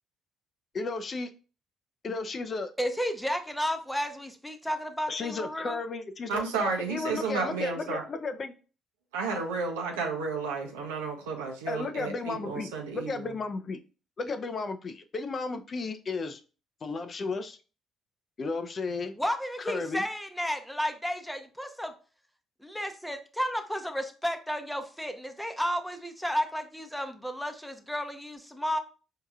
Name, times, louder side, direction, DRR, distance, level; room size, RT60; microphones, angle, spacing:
voice 1, 0.7-1.3 2.0-2.7 5.1-6.4 6.8-8.5 11.7-13.8 14.2-16.4 16.8-17.6 18.4-19.1 19.6-20.0, left 3 dB, 45° left, 9 dB, 0.5 m, -34 dB
voice 2, 2.8-5.8 19.2-22.0 22.6-28.8, equal, 5° left, 7 dB, 0.7 m, -32 dB
voice 3, 6.3-8.0 9.1-13.3, right 4 dB, 90° right, 2 dB, 0.7 m, -32 dB
4.5 x 2.8 x 2.3 m, 0.36 s
hypercardioid pair, 55°, 0 cm